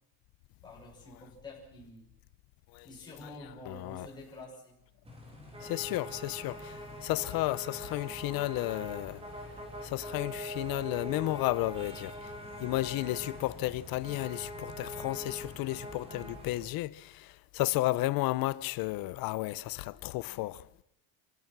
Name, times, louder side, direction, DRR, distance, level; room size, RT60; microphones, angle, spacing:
voice 1, 0.6-2.1 2.8-4.8, left 2 dB, 10° left, 6.1 m, -48 dB
voice 2, 3.7-4.1 5.6-9.2 9.8-12.3 12.6-20.6, left 18 dB, 70° left, 0.8 m, -33 dB
sound 1, 5.0-16.7, equal, 15° right, 3.3 m, -43 dB
27.0 x 15.5 x 6.1 m
cardioid pair, 170°, 36 cm